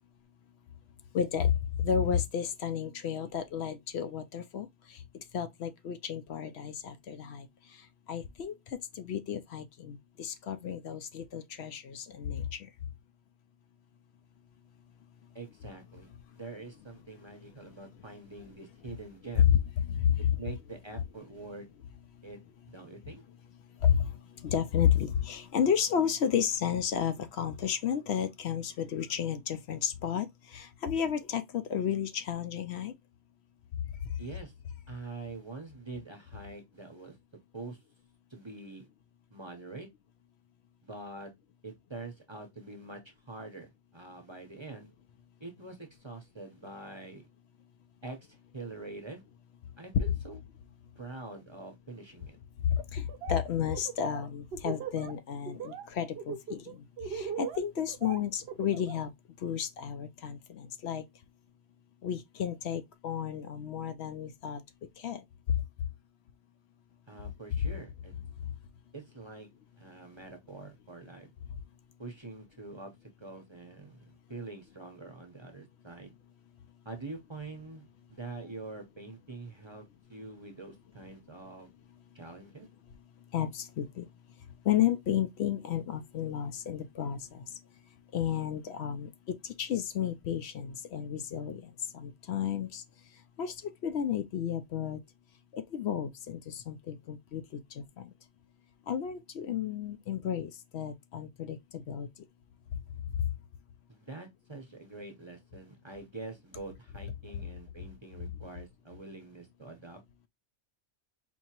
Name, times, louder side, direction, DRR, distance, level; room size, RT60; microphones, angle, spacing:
voice 1, 1.1-5.0 5.3-7.5 8.1-8.6 9.0-12.7 19.9-20.4 23.8-24.1 24.4-32.9 52.7-59.1 59.4-61.0 62.0-64.6 65.0-65.2 83.3-84.1 84.7-87.4 88.1-92.8 93.4-95.0 95.5-98.1 98.9-102.1 103.2-103.3 108.2-108.3, left 9 dB, 70° left, 0.8 m, -32 dB
voice 2, 15.3-19.5 20.2-21.7 22.2-22.4 22.7-23.2 34.2-34.5 34.9-37.2 37.5-37.8 38.3-38.9 39.3-39.9 40.8-41.3 41.6-44.9 45.4-47.3 48.0-49.2 49.8-50.4 50.9-52.4 67.1-68.1 68.9-69.5 69.8-71.3 72.0-76.1 76.8-79.8 80.1-81.7 82.1-82.7 103.9-110.0, right 3 dB, 25° right, 0.8 m, -45 dB
Laughter, 53.0-53.4 53.7-55.1 55.5-55.8 56.2-59.0, right 7 dB, 65° right, 0.8 m, -39 dB
4.5 x 2.8 x 2.8 m
omnidirectional pair, 1.2 m